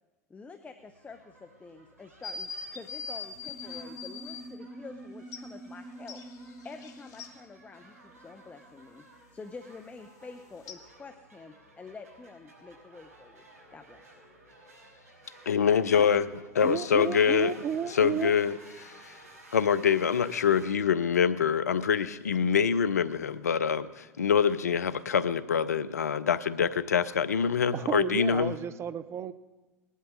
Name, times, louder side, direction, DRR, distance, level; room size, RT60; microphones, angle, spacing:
voice 1, 0.3-6.2 6.6-9.1 9.3-13.4 13.7-14.0, left 4 dB, 15° left, 0.9 m, -47 dB
sound 1, 0.8-20.7, right 2 dB, 85° right, 5.9 m, -56 dB
sound 2, 2.2-4.4 5.3-5.4 6.1-7.3 10.7-10.8, left 5 dB, 40° left, 1.4 m, -40 dB
sound 3, 3.3-9.3, right 1 dB, ahead, 1.6 m, -47 dB
voice 2, 15.5-16.3 16.6-17.5 17.9-18.5 18.8-19.1 19.5-28.5, left 7 dB, 90° left, 0.6 m, -25 dB
voice 3, 16.6-18.4 27.7-29.3, right 8 dB, 35° right, 0.7 m, -32 dB
20.0 x 11.0 x 3.8 m
hypercardioid pair, 90°, 8 cm